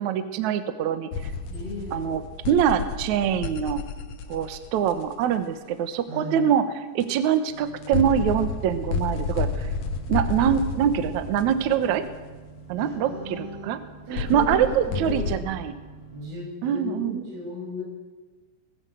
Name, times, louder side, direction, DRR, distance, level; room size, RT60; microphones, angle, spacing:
voice 1, 0.0-1.3 1.9-3.8 4.3-9.7 10.1-12.0 12.7-13.8 14.1-15.8 16.6-17.2, right 9 dB, 80° right, 10 dB, 1.6 m, -24 dB
sound 1, 1.1-5.2 7.0-7.1 7.8-12.4 14.2-15.4, left 4 dB, 80° left, 1.5 m, -31 dB
voice 2, 1.5-2.1 6.1-6.4 12.8-13.7 14.1-15.3 16.1-17.8, left 1 dB, 55° right, -3 dB, 9.6 m, -35 dB
sound 2, 7.5-16.3, right 3 dB, 60° left, 7.3 m, -46 dB
21.0 x 16.5 x 7.8 m, 1.3 s
omnidirectional pair, 5.2 m